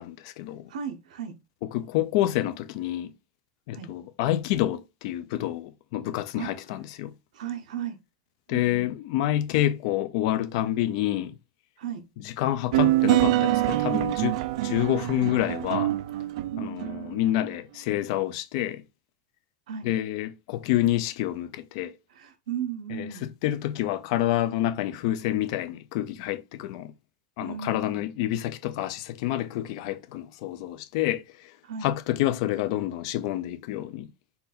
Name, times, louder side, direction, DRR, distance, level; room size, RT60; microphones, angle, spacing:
voice 1, 0.0-0.7 1.7-3.1 3.7-7.1 8.5-11.4 12.2-15.9 16.6-18.8 19.8-21.9 22.9-23.1 23.4-26.9 27.4-31.5 31.8-34.1, left 13 dB, 55° left, 0.6 m, -28 dB
voice 2, 0.7-1.4 3.7-3.9 6.4-6.5 7.3-8.0 8.5-8.9 11.8-12.0 16.5-16.9 19.7-19.9 22.1-23.3 27.4-28.0 31.6-31.9, right 8 dB, 85° right, 1.0 m, -35 dB
sound 1, 12.7-17.3, right 16 dB, 70° right, 0.4 m, -25 dB
4.1 x 2.7 x 4.2 m
supercardioid pair, 155°, 4 cm